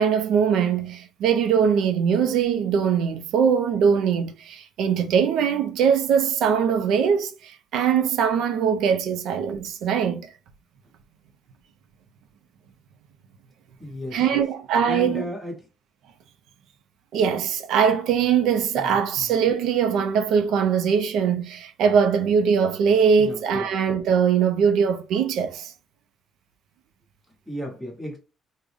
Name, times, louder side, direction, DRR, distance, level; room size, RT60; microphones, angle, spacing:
voice 1, 0.0-10.3 14.1-15.3 17.1-25.7, right 7 dB, 80° right, 0.4 m, -21 dB
voice 2, 13.8-14.4 14.9-15.6 18.8-19.3 23.2-23.7 27.5-28.2, equal, ahead, 1.1 m, -34 dB
3.5 x 2.1 x 3.3 m
cardioid pair, 155°, 0 cm